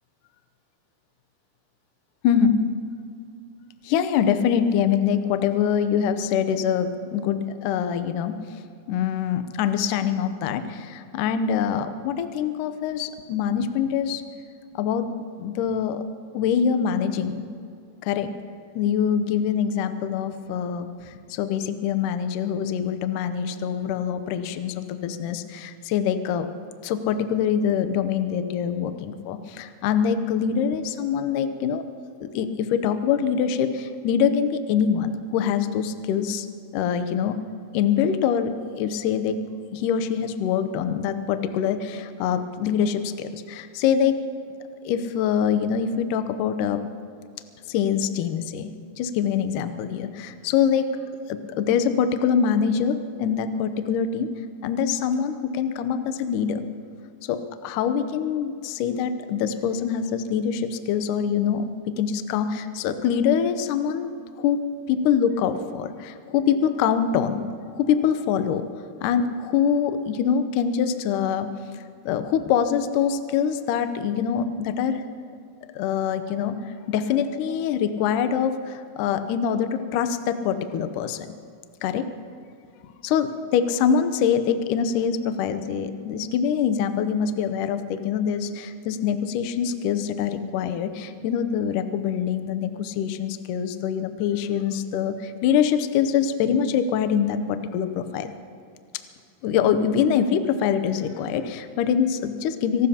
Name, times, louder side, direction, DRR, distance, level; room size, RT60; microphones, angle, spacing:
voice 1, 2.2-2.6 3.9-8.4 8.9-14.2 14.7-16.0 16.3-17.5 18.0-18.3 18.8-20.9 21.3-26.5 26.8-31.8 32.2-36.5 36.7-37.4 37.7-39.5 39.7-44.3 44.9-46.8 47.7-48.7 49.0-51.0 51.3-54.3 54.6-56.6 57.3-61.7 62.0-64.1 64.4-67.5 67.8-68.7 69.0-71.5 72.1-75.0 75.8-81.3 81.8-82.1 83.0-98.3 99.4-102.9, left 7 dB, 80° left, 10 dB, 1.9 m, -24 dB
25.5 x 18.0 x 2.9 m, 2.4 s
omnidirectional pair, 4.6 m